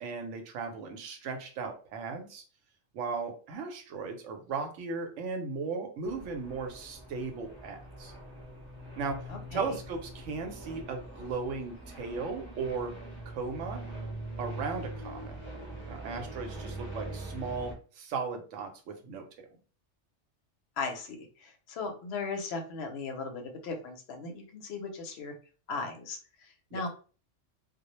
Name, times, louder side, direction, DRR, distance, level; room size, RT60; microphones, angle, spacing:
voice 1, 0.0-2.4 2.9-8.1 9.0-12.9 13.3-13.8 14.4-15.3 15.9-19.5 26.7-26.8, right 4 dB, 85° right, 5 dB, 0.9 m, -37 dB
sound 1, 6.0-17.7, right 1 dB, 10° right, 0.7 m, -43 dB
voice 2, 9.3-9.8 20.8-25.3 25.7-26.9, left 4 dB, 65° left, 4 dB, 0.8 m, -37 dB
2.1 x 2.0 x 2.9 m, 0.38 s
omnidirectional pair, 1.2 m